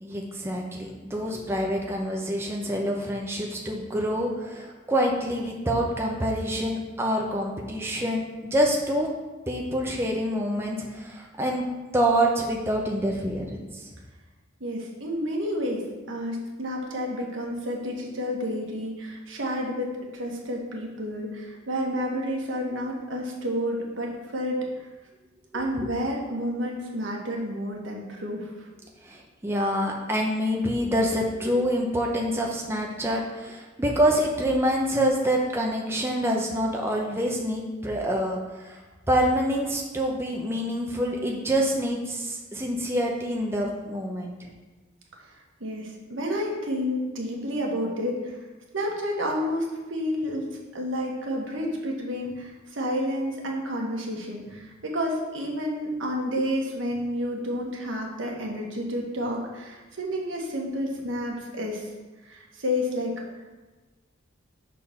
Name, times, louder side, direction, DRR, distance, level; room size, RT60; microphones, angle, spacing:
voice 1, 0.0-8.2 8.5-9.1 9.5-11.7 11.9-13.9 25.5-25.9 29.0-38.8 39.1-44.5, equal, 10° right, -1 dB, 0.6 m, -26 dB
voice 2, 14.6-24.6 25.5-28.7 45.6-48.4 48.7-50.4 50.7-61.9 62.3-63.1, equal, 70° right, 0 dB, 1.3 m, -30 dB
6.6 x 3.7 x 5.7 m, 1.2 s
head